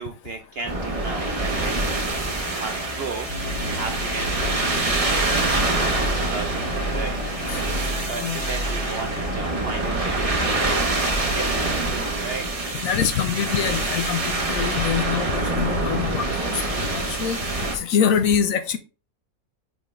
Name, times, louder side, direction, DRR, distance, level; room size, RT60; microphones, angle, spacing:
voice 1, 0.0-2.0 2.6-5.7 6.2-7.2 7.4-12.5, right 4 dB, 60° right, 5 dB, 0.6 m, -35 dB
sound 1, 0.6-17.8, right 2 dB, 30° right, 0.8 m, -25 dB
sound 2, 2.1-11.7, left 1 dB, 50° left, 1.4 m, -33 dB
voice 2, 12.8-17.4 17.7-18.8, left 7 dB, 70° left, 10 dB, 1.1 m, -24 dB
9.3 x 3.7 x 3.2 m, 0.35 s
omnidirectional pair, 1.6 m